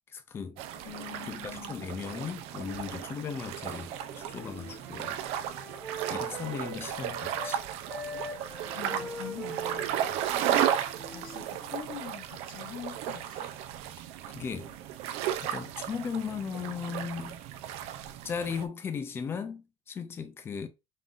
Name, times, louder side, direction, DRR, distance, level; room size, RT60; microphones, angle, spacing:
voice 1, 0.1-0.9 1.2-5.2 6.1-7.6 10.0-10.2 14.0-14.1 14.3-14.8 15.4-17.4 18.2-20.7, left 6 dB, 20° left, 0.4 m, -37 dB
sound 1, 0.6-18.7, right 10 dB, 55° right, 0.4 m, -35 dB
voice 2, 0.8-2.0 8.7-9.9 10.9-13.5, left 10 dB, 40° left, 0.8 m, -44 dB
Wind instrument woodwind instrument, 3.8-7.6 7.9-12.0, right 1 dB, ahead, 1.3 m, -43 dB
3.8 x 3.6 x 2.5 m
cardioid pair, 175°, 13 cm